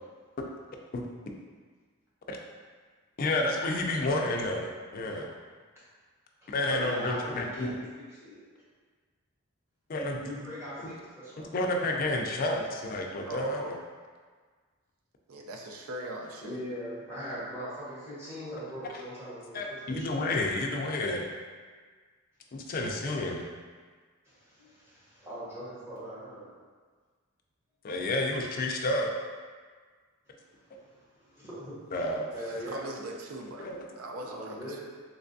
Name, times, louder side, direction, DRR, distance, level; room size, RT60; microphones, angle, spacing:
voice 1, 3.2-4.7 4.9-5.3 6.5-7.8 9.9-10.2 11.5-13.7 18.9-19.0 19.5-21.2 22.5-23.5 27.8-29.1 31.9-32.2 33.6-33.8, left 2 dB, 45° left, 1 dB, 0.4 m, -30 dB
voice 2, 6.4-7.8 8.1-8.4 10.2-11.8 16.4-19.5 19.9-20.1 24.2-26.5 30.7-31.7 32.3-32.9 34.3-34.8, equal, 10° right, -11 dB, 1.2 m, -40 dB
voice 3, 13.3-13.8 15.3-16.6 32.4-34.8, right 1 dB, 85° right, 2 dB, 0.5 m, -40 dB
3.3 x 3.2 x 2.6 m, 1.5 s
head